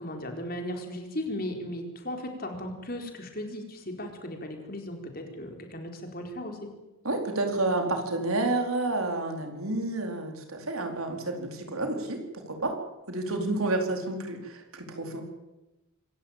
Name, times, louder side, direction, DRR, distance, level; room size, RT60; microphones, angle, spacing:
voice 1, 0.0-6.7 13.3-13.6, left 1 dB, 40° left, 4 dB, 4.4 m, -36 dB
voice 2, 7.0-12.2 12.5-12.7 13.1-15.2, right 2 dB, 75° right, 3 dB, 4.4 m, -30 dB
26.0 x 15.0 x 9.0 m, 1.0 s
head